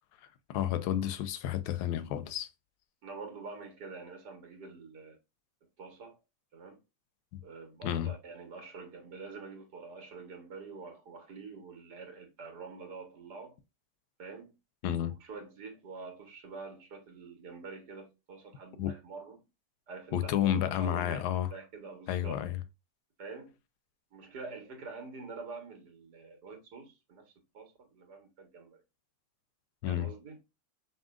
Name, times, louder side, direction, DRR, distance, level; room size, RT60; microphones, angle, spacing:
voice 1, 0.5-2.5 7.3-7.4 7.8-8.1 14.8-15.2 18.8-18.9 20.1-21.5 22.1-22.6 29.8-30.1, left 11 dB, 80° left, 1.2 m, -31 dB
voice 2, 3.0-5.2 5.8-6.2 6.5-6.8 7.4-13.6 14.2-14.5 15.0-19.4 19.9-21.2 21.5-22.4 23.2-23.6 24.1-28.8 29.9-30.4, right 4 dB, 85° right, 1.8 m, -46 dB
5.4 x 2.7 x 2.4 m
omnidirectional pair, 1.7 m